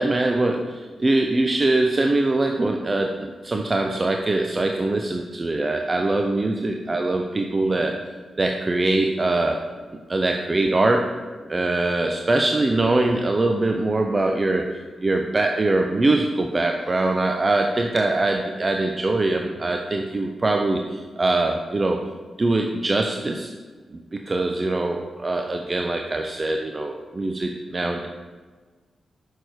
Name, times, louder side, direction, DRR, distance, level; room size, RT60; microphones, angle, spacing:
voice 1, 0.0-8.0 8.4-9.6 10.1-11.1 11.5-14.7 15.0-22.0 22.4-23.5 23.9-28.1, right 2 dB, 40° right, 3 dB, 0.7 m, -22 dB
6.5 x 6.3 x 4.7 m, 1.4 s
supercardioid pair, 45°, 0 cm